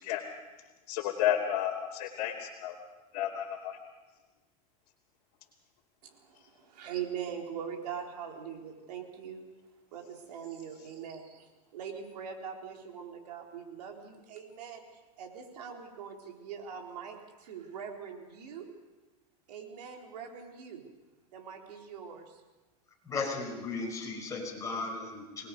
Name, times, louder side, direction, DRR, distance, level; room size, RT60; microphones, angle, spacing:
voice 1, 0.9-2.8 3.1-3.8, left 10 dB, 65° left, -4 dB, 2.8 m, -31 dB
voice 2, 6.0-9.5 9.9-14.8 15.2-18.7 19.5-20.9 21.3-22.4, right 7 dB, 85° right, 2 dB, 3.9 m, -42 dB
voice 3, 23.0-25.5, left 3 dB, 15° left, -2 dB, 5.3 m, -36 dB
25.5 x 20.0 x 5.3 m, 1.2 s
supercardioid pair, 150°, 20 cm